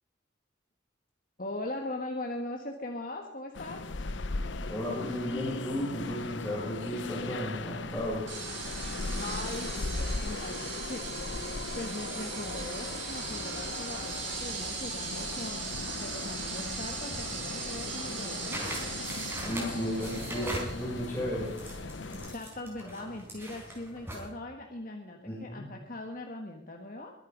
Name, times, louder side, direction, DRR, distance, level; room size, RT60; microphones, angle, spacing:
voice 1, 1.4-3.8 9.2-18.7 19.4-19.8 20.3-20.5 22.1-27.1, left 1 dB, 45° left, 3 dB, 1.4 m, -40 dB
sound 1, 3.5-22.4, left 3 dB, 75° left, 0.8 m, -38 dB
voice 2, 4.7-8.3 19.5-21.5 25.2-25.6, equal, 15° left, -6 dB, 6.7 m, -34 dB
sound 2, 8.3-22.2, right 4 dB, 85° right, 5.9 m, -39 dB
sound 3, 18.5-24.3, right 1 dB, 10° right, 4.7 m, -41 dB
22.5 x 9.8 x 5.2 m, 0.80 s
head